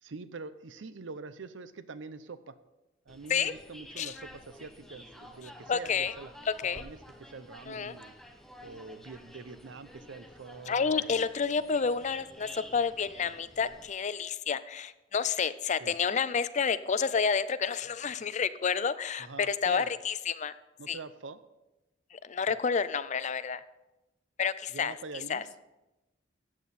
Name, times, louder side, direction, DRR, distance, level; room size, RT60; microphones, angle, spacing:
voice 1, 0.0-2.5 3.1-6.3 6.7-11.2 15.8-16.0 19.2-19.9 20.8-21.4 24.7-25.4, right 4 dB, 90° right, 13 dB, 0.7 m, -45 dB
sound 1, 3.1-13.9, equal, ahead, 0.9 m, -51 dB
voice 2, 5.7-6.1 6.5-6.8 7.7-7.9 10.7-20.5 20.9-21.0 22.1-23.6 24.4-24.9 25.3-25.4, left 6 dB, 40° left, 15 dB, 0.4 m, -30 dB
14.0 x 8.4 x 4.2 m, 0.99 s
head